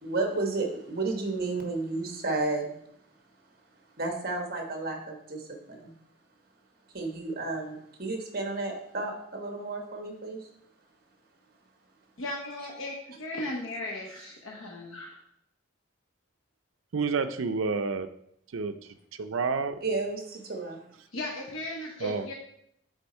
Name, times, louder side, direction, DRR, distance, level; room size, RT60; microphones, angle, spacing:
voice 1, 0.0-2.7 4.0-5.9 6.9-10.4 19.8-20.8, right 3 dB, 50° right, 2 dB, 1.2 m, -32 dB
voice 2, 12.2-15.2 21.1-22.3, left 1 dB, 90° left, -1 dB, 1.0 m, -36 dB
voice 3, 16.9-18.1 18.5-18.7 19.2-19.8 22.0-22.2, right 4 dB, 85° right, 10 dB, 0.5 m, -29 dB
8.0 x 3.5 x 4.3 m, 0.73 s
head